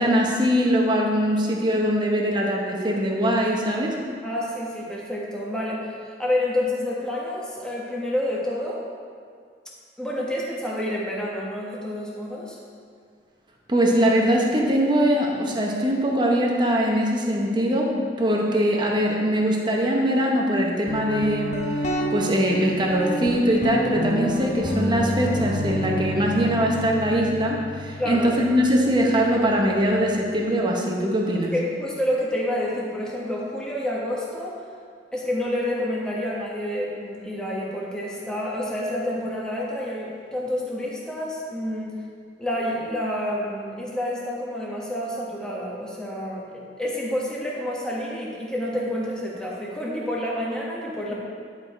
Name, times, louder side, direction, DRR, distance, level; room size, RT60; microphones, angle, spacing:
voice 1, 0.0-4.0 13.7-17.9 18.2-31.5 51.1-51.2, equal, 25° right, -1 dB, 0.9 m, -22 dB
voice 2, 4.2-8.8 10.0-12.6 28.0-28.3 31.5-34.6 35.1-42.0 42.4-51.1, left 1 dB, 5° left, -5 dB, 1.3 m, -28 dB
Guitar, 20.9-30.4, equal, 40° left, 0.9 m, -30 dB
10.5 x 4.8 x 4.3 m, 2.1 s
head